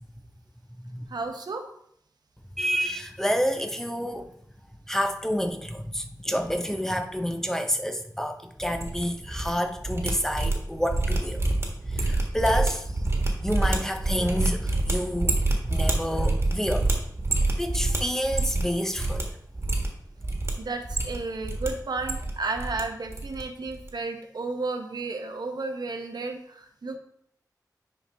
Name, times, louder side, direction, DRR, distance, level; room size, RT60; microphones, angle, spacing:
voice 1, 1.1-1.7 20.6-27.0, right 3 dB, 75° right, 4 dB, 1.0 m, -33 dB
voice 2, 2.6-4.3 4.9-11.4 11.9-13.0 13.4-15.3 15.7-16.9 17.6-19.3, equal, 5° left, 5 dB, 0.8 m, -29 dB
sound 1, 8.6-9.5 9.8-18.7 19.0-19.2 19.5-20.5 20.8-21.7 21.9-22.8 23.1-23.4 23.7-23.9, right 2 dB, 35° right, 1.6 m, -27 dB
10.0 x 4.4 x 3.5 m, 0.71 s
wide cardioid pair, 75°, 7 cm